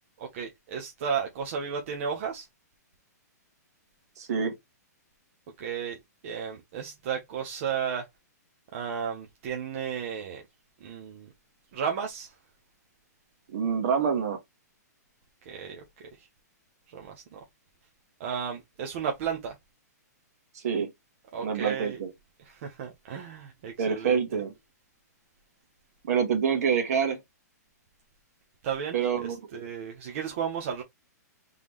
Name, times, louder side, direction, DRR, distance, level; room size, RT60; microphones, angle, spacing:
voice 1, 0.2-2.5 5.6-6.0 6.2-8.1 8.7-10.4 10.8-11.3 11.7-12.3 15.4-15.8 16.2-16.3 16.9-17.4 18.2-19.6 21.3-22.0 22.4-24.4 28.6-30.8, right 7 dB, 45° right, 1.1 m, -34 dB
voice 2, 4.2-4.5 13.5-14.4 20.6-20.9 21.4-22.1 23.8-24.5 26.0-27.2 28.9-29.4, right 7 dB, 60° right, 1.8 m, -26 dB
3.7 x 3.7 x 3.1 m
hypercardioid pair, 150°, 9 cm